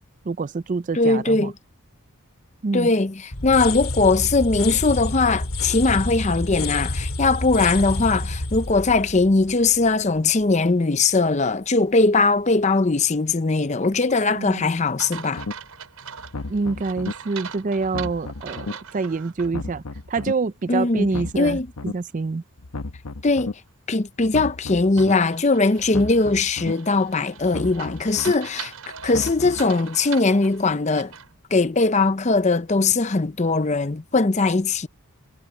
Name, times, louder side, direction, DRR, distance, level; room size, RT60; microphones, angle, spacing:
voice 1, 0.3-1.5 2.6-2.9 14.3-14.7 16.5-19.8 20.1-22.4, right 4 dB, 35° right, 0.4 m, -26 dB
voice 2, 0.9-1.5 2.7-15.4 20.7-21.7 23.2-23.6 23.9-28.7 29.0-31.1 31.5-34.9, left 3 dB, 30° left, 0.6 m, -20 dB
sound 1, 3.3-10.2, left 2 dB, 70° left, 2.6 m, -28 dB
sound 2, 15.0-19.5 19.9-20.0 25.0-31.3, right 7 dB, 85° right, 5.9 m, -40 dB
sound 3, 15.4-15.5 16.2-17.1 17.8-18.7 19.4-20.3 21.0-21.9 22.6-23.5 24.2-25.1 25.8-26.7 27.4-28.3 29.0-29.7, left 3 dB, 85° left, 0.9 m, -33 dB
head